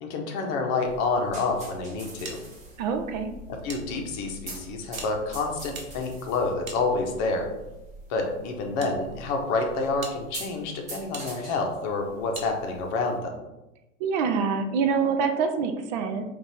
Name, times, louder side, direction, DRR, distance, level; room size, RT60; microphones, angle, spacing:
voice 1, 0.0-2.4 3.6-7.5 8.1-13.4, left 3 dB, 40° left, 2 dB, 0.9 m, -28 dB
sound 1, 0.8-13.2, right 2 dB, 15° right, 1.1 m, -45 dB
sound 2, 2.2-3.8 4.1-4.2 4.9-7.4 8.2-8.9 9.5-9.6 10.0-10.2 11.1-11.3 12.3-12.5, right 4 dB, 80° right, 1.0 m, -43 dB
voice 2, 2.8-3.3 14.0-16.2, right 5 dB, 35° right, 6 dB, 0.4 m, -25 dB
5.2 x 2.6 x 3.4 m, 1.0 s
hypercardioid pair, 110°, 41 cm